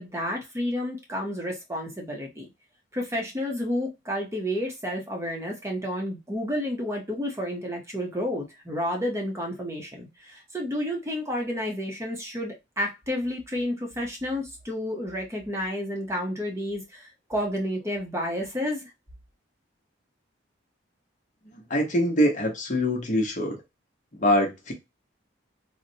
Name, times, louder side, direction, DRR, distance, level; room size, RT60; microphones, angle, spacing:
voice 1, 0.0-2.5 2.9-18.9, left 1 dB, 15° right, 0.7 m, -30 dB
voice 2, 21.7-23.6 24.1-24.7, equal, 40° left, 0.8 m, -24 dB
4.0 x 2.1 x 2.7 m
head